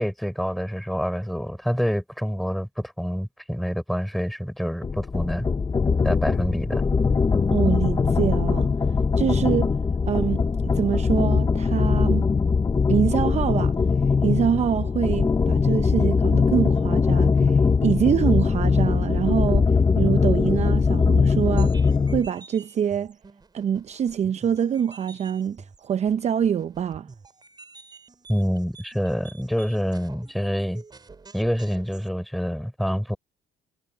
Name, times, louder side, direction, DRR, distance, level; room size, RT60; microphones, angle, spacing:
voice 1, 0.0-5.5 6.0-6.8 28.3-30.8 31.3-33.2, equal, ahead, 4.8 m, -27 dB
sound 1, 4.8-22.3, left 5 dB, 20° left, 0.9 m, -21 dB
voice 2, 7.5-8.7 9.2-9.7 10.1-12.3 12.9-13.8 14.2-23.1 23.5-27.1, right 8 dB, 40° right, 0.7 m, -25 dB
sound 2, 21.4-32.1, right 4 dB, 25° right, 6.5 m, -49 dB
cardioid pair, 110°, 17 cm